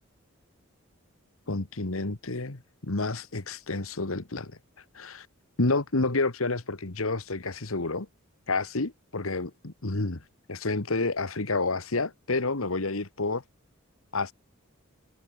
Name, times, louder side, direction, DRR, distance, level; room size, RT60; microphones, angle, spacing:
voice 1, 1.5-5.3 5.6-8.1 8.5-13.4 14.1-14.3, left 3 dB, 90° left, 1.7 m, -30 dB
head